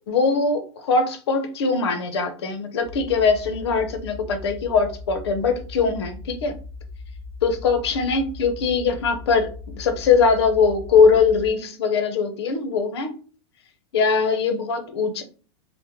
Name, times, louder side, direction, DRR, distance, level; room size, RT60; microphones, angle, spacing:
voice 1, 0.1-6.5 7.4-13.1 13.9-15.2, left 5 dB, 60° left, 8 dB, 0.6 m, -21 dB
sound 1, 2.8-11.5, left 3 dB, 5° right, 0.5 m, -39 dB
3.1 x 2.1 x 3.4 m, 0.39 s
supercardioid pair, 170°, 15 cm